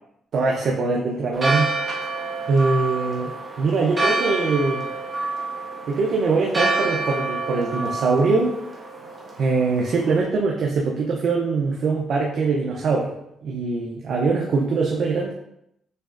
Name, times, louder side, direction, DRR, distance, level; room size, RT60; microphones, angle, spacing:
voice 1, 0.3-1.7 2.5-4.9 5.9-8.6 9.4-13.1 13.4-15.3, right 4 dB, 60° right, -1 dB, 0.6 m, -22 dB
Church bell, 1.3-10.2, right 3 dB, 30° right, 1.4 m, -28 dB
6.5 x 3.1 x 2.5 m, 0.79 s
cardioid pair, 90°, 0 cm